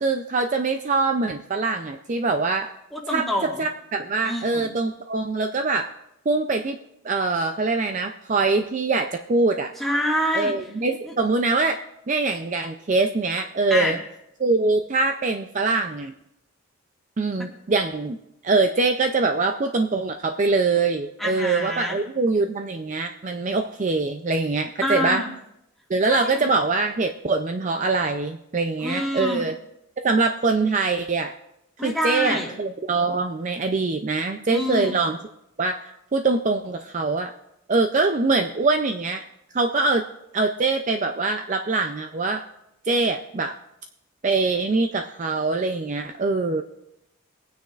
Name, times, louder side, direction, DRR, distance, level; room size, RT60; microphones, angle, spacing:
voice 1, 0.0-2.7 3.1-3.3 3.6-5.9 6.3-6.8 7.0-9.7 10.3-11.8 12.1-14.0 14.4-16.1 17.2-18.2 18.4-25.2 25.9-29.5 30.0-31.3 31.8-35.2 35.6-37.3 37.7-39.2 39.5-40.0 40.3-42.4 42.9-43.5 44.2-46.6, right 3 dB, 35° right, 6 dB, 0.4 m, -23 dB
voice 2, 2.9-3.6 4.2-4.7 9.8-10.6 11.0-11.1 13.7-13.9 17.4-17.5 21.2-22.0 24.8-25.3 26.1-26.4 28.8-29.4 31.8-32.5 34.5-35.0, left 1 dB, ahead, -3 dB, 1.9 m, -26 dB
22.5 x 9.4 x 2.5 m, 0.83 s
head